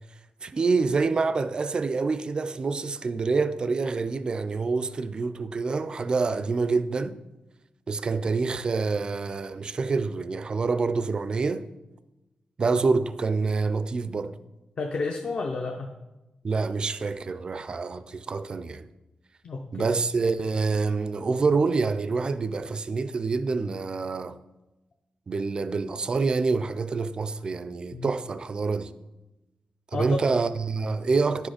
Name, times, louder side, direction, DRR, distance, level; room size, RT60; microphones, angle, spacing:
voice 1, 0.4-7.2 7.9-11.7 12.6-14.3 16.4-18.9 19.7-24.4 25.3-28.9 29.9-31.5, right 4 dB, 35° right, 0.4 m, -26 dB
voice 2, 14.8-15.9 19.4-20.0 27.9-28.1 29.9-30.2, left 3 dB, 40° left, 0.6 m, -31 dB
10.0 x 6.3 x 5.0 m
wide cardioid pair, 170°, 3 cm